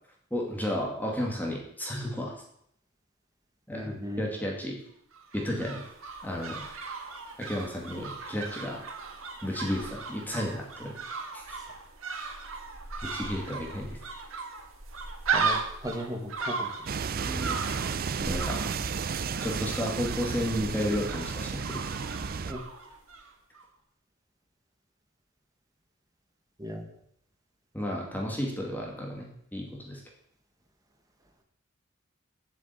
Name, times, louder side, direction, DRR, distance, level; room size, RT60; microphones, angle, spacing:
voice 1, 0.3-2.3 3.7-4.8 5.3-5.8 6.2-6.7 7.4-8.8 9.4-10.9 11.3-11.4 13.0-14.0 17.2-17.6 18.2-18.6 19.4-21.8 27.7-30.0, equal, 10° left, -1 dB, 2.2 m, -32 dB
voice 2, 3.7-4.3 15.3-16.7 22.5-22.6 26.6-26.8, equal, 20° right, 3 dB, 1.5 m, -36 dB
sound 1, 5.1-23.3 23.5-23.6, right 4 dB, 90° right, 1.6 m, -37 dB
sound 2, 16.9-22.5, right 5 dB, 45° right, 0.5 m, -33 dB
7.6 x 7.2 x 8.2 m, 0.70 s
head